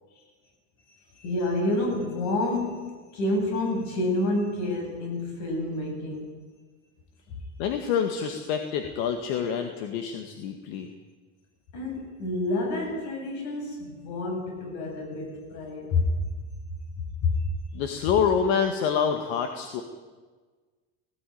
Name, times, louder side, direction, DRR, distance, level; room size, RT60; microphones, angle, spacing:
voice 1, 1.1-6.4 7.3-7.4 11.7-16.3 17.2-17.5, left 2 dB, 60° left, 2 dB, 7.8 m, -28 dB
voice 2, 7.6-10.9 17.7-19.8, left 7 dB, 80° left, 5 dB, 2.0 m, -27 dB
18.5 x 18.0 x 9.5 m, 1.4 s
cardioid pair, 155°, 33 cm